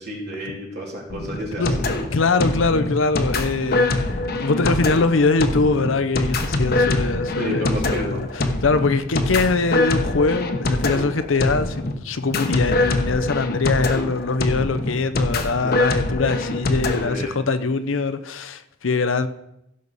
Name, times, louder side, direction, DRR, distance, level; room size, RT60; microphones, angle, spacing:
voice 1, 0.0-1.9 7.4-8.2 15.6-15.8 17.0-17.3, equal, 55° right, 3.3 m, -31 dB
sound 1, 1.1-17.1, left 2 dB, 50° left, 1.0 m, -24 dB
voice 2, 2.1-19.3, left 3 dB, 70° left, 0.7 m, -22 dB
16.0 x 6.4 x 4.1 m
head